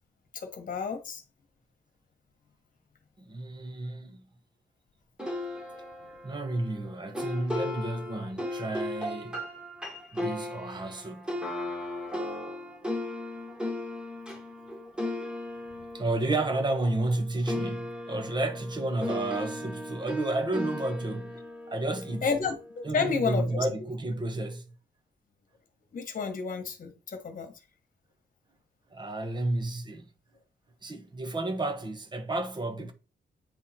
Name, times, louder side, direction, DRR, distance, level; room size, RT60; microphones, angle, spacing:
voice 1, 0.3-1.2 6.0-6.1 22.2-23.6 25.9-27.5, left 5 dB, 45° left, 1.4 m, -31 dB
voice 2, 3.3-4.2 6.2-9.4 10.1-11.3 15.9-21.4 21.7-22.3 22.8-24.6 28.9-30.1 30.8-32.9, right 2 dB, 25° right, 1.0 m, -31 dB
sound 1, 5.2-17.2 17.5-22.7, left 1 dB, 5° right, 1.4 m, -36 dB
8.9 x 3.7 x 4.3 m
wide cardioid pair, 175°, 19 cm